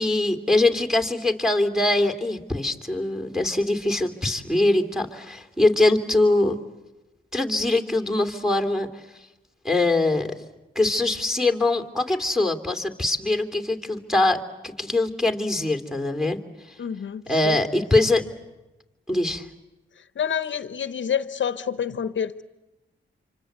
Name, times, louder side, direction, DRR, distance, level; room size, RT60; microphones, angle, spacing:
voice 1, 0.0-6.6 7.3-8.9 9.6-10.3 10.7-16.4 17.3-18.3 19.1-19.5, left 2 dB, ahead, 6 dB, 3.0 m, -22 dB
voice 2, 16.8-17.8 20.0-22.4, left 8 dB, 65° left, 13 dB, 0.9 m, -28 dB
26.5 x 25.5 x 8.1 m, 1.0 s
cardioid pair, 50°, 21 cm